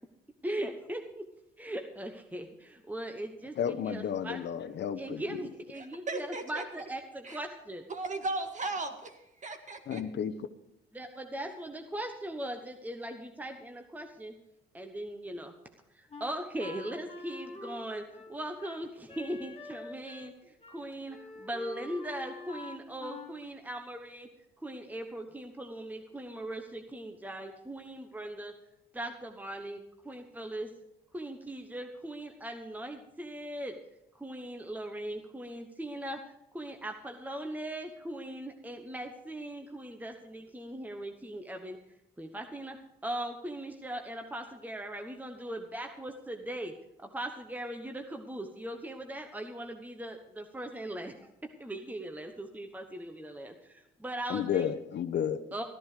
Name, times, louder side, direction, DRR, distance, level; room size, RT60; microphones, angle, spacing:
voice 1, 0.4-1.3 1.6-3.6 3.8-4.4 5.0-7.8 10.9-14.3 14.7-15.5 15.9-24.3 24.6-28.5 28.9-30.7 31.1-33.7 34.1-36.2 36.5-41.8 42.2-42.8 43.0-46.7 47.0-54.7 55.5-55.6, right 1 dB, 10° right, 1.1 m, -39 dB
voice 2, 3.6-5.4 9.9-10.5 54.3-55.4, left 8 dB, 60° left, 0.9 m, -32 dB
voice 3, 5.8-6.9 7.2-7.4 7.9-10.0, right 3 dB, 40° right, 1.8 m, -37 dB
Wind instrument woodwind instrument, 16.1-20.4 20.6-20.8 21.1-23.4, left 2 dB, 30° left, 1.8 m, -46 dB
14.0 x 10.5 x 5.0 m
cardioid pair, 90°, 20 cm